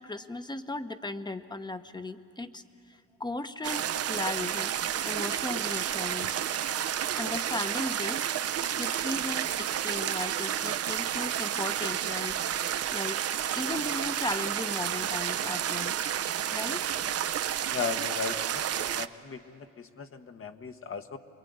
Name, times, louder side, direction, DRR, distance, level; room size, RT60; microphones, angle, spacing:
voice 1, 0.0-2.6 2.9-4.7 5.0-6.4 7.2-8.3 8.7-12.4 12.9-13.2 13.6-15.9 16.5-16.9, left 2 dB, 15° left, 10 dB, 1.0 m, -36 dB
sound 1, 3.6-19.1, right 10 dB, 55° right, 0.7 m, -31 dB
voice 2, 17.7-18.6 18.9-21.2, left 6 dB, 45° left, 7 dB, 1.4 m, -36 dB
28.0 x 22.0 x 9.5 m, 2.4 s
cardioid pair, 90°, 30 cm